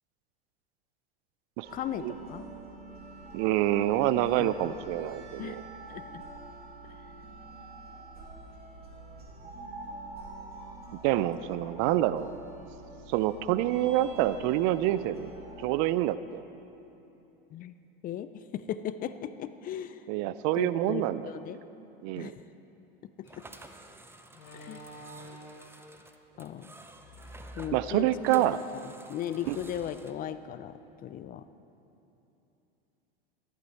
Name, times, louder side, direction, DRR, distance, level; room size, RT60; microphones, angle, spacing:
sound 1, 1.6-15.7, right 2 dB, 30° right, 2.5 m, -46 dB
voice 1, 1.7-2.5 4.3-4.5 5.4-5.6 5.9-6.2 17.5-17.7 18.0-20.0 20.5-21.6 22.2-22.4 23.0-23.4 24.5-24.9 26.4-26.7 27.6-28.4 29.1-31.4, left 10 dB, 30° left, 13 dB, 0.4 m, -37 dB
voice 2, 3.3-5.6 11.0-12.3 13.1-15.3 15.6-16.4 20.1-21.3 22.0-22.3 27.7-28.6 29.5-29.6, right 14 dB, 55° right, 15 dB, 0.4 m, -27 dB
Slam, 23.2-23.4 24.3-25.9 26.9-28.3 28.7-28.8 29.4-30.1, equal, 55° left, 2.4 m, -48 dB
sound 2, 23.2-30.1, right 2 dB, 10° right, 0.7 m, -52 dB
14.0 x 11.0 x 4.2 m, 2.9 s
hypercardioid pair, 95°, 30 cm